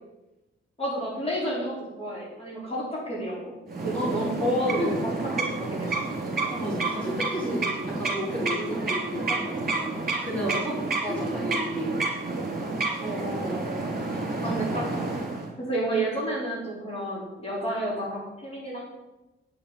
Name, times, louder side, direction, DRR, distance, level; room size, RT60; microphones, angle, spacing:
voice 1, 0.8-3.5 3.8-4.9 5.3-5.8 11.0-11.3 13.0-13.6 14.4-14.9 15.6-18.8, right 1 dB, 30° left, -5 dB, 4.3 m, -30 dB
sound 1, 3.7-15.5, right 3 dB, 45° right, 3.4 m, -30 dB
voice 2, 3.9-4.5 4.8-4.9 6.5-9.9 10.2-11.9 14.0-14.5, equal, 5° left, -6 dB, 4.5 m, -33 dB
9.2 x 6.8 x 8.8 m, 1.0 s
wide cardioid pair, 125°, 21 cm